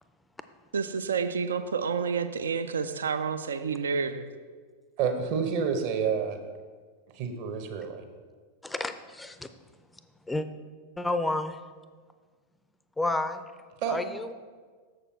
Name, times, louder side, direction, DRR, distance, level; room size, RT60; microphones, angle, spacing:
voice 1, 0.7-4.3, right 5 dB, 70° right, 11 dB, 0.4 m, -29 dB
voice 2, 5.0-6.4 7.1-8.1 13.8-14.0, right 6 dB, 45° right, 6 dB, 0.9 m, -29 dB
voice 3, 8.6-9.5 10.3-10.5 11.0-11.6 13.0-13.4 13.9-14.3, left 2 dB, 5° left, 10 dB, 0.5 m, -30 dB
7.0 x 6.6 x 4.3 m, 1.5 s
figure-of-eight pair, 90°, 0 cm